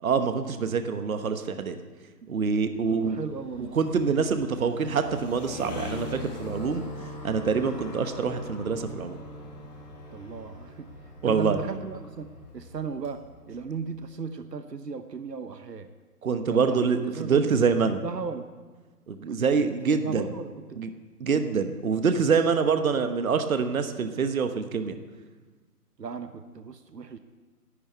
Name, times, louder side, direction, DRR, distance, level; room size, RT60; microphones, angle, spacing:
voice 1, 0.0-1.8 2.3-3.2 3.6-6.9 7.2-9.2 11.2-11.6 16.2-18.0 19.1-20.2 20.8-20.9 21.2-25.0, right 5 dB, 60° right, 8 dB, 1.1 m, -25 dB
sound 1, 2.4-14.0, left 2 dB, 25° left, 1.9 m, -42 dB
voice 2, 2.9-3.8 10.1-10.9 11.2-12.3 12.5-13.2 13.5-15.9 16.5-17.5 18.0-18.6 19.3-19.4 19.9-20.8 21.3-21.6 26.0-27.2, right 5 dB, 80° right, 10 dB, 1.1 m, -36 dB
11.5 x 8.8 x 8.5 m, 1.4 s
figure-of-eight pair, 155°, 48 cm